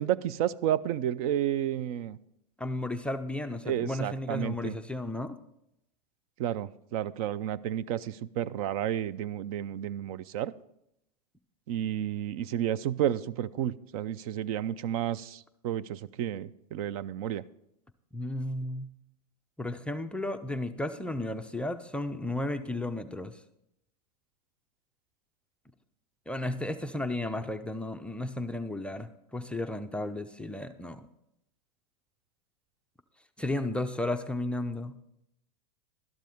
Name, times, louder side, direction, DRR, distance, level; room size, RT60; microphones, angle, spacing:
voice 1, 0.0-2.2 3.6-4.7 6.4-10.5 11.7-17.4, right 11 dB, 60° right, 19 dB, 0.5 m, -31 dB
voice 2, 2.6-5.4 18.1-18.9 19.6-23.4 26.3-31.1 33.4-34.9, left 1 dB, 5° left, 7 dB, 0.4 m, -33 dB
12.0 x 12.0 x 3.6 m, 0.79 s
supercardioid pair, 140°, 21 cm